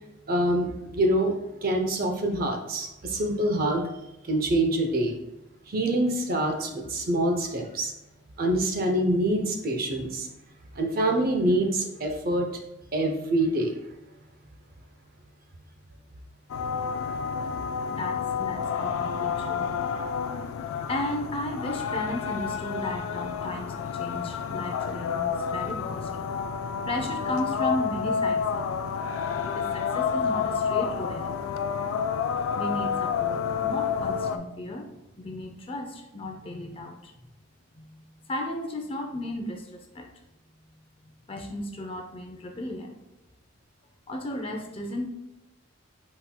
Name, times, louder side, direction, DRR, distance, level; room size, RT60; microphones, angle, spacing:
voice 1, 0.3-1.3 1.6-3.9 4.3-5.2 5.7-7.9 8.4-10.3 10.8-12.5 12.9-13.8, right 1 dB, 45° right, 3 dB, 0.6 m, -25 dB
sound 1, 16.5-34.4, left 6 dB, 80° left, 0.3 m, -29 dB
voice 2, 17.9-19.7 20.9-28.9 29.4-31.5 32.5-34.9 35.2-37.1 37.7-40.1 41.3-42.9 44.1-45.1, left 1 dB, 25° left, 3 dB, 0.5 m, -35 dB
5.6 x 4.3 x 2.2 m, 0.95 s
head